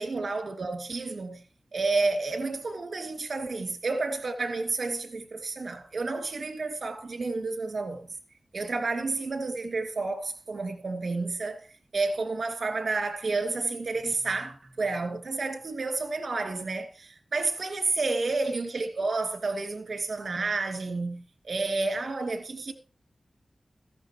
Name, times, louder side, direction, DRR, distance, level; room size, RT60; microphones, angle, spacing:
voice 1, 0.0-1.4 1.7-8.1 8.5-11.6 11.9-22.7, right 3 dB, 65° right, 2.7 m, -30 dB
15.5 x 12.5 x 3.0 m
wide cardioid pair, 80°, 0 cm